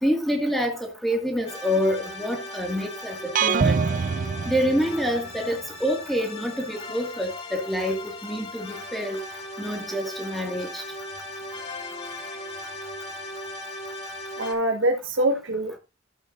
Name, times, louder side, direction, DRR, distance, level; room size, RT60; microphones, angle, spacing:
voice 1, 0.0-3.8 4.5-9.2 9.6-10.8, equal, ahead, 1.9 m, -27 dB
sound 1, 1.5-14.5, left 1 dB, 30° left, 3.1 m, -38 dB
sound 2, 3.4-5.4, right 5 dB, 45° right, 0.4 m, -24 dB
voice 2, 14.3-15.8, right 1 dB, 85° right, 1.5 m, -24 dB
13.0 x 8.2 x 2.6 m
head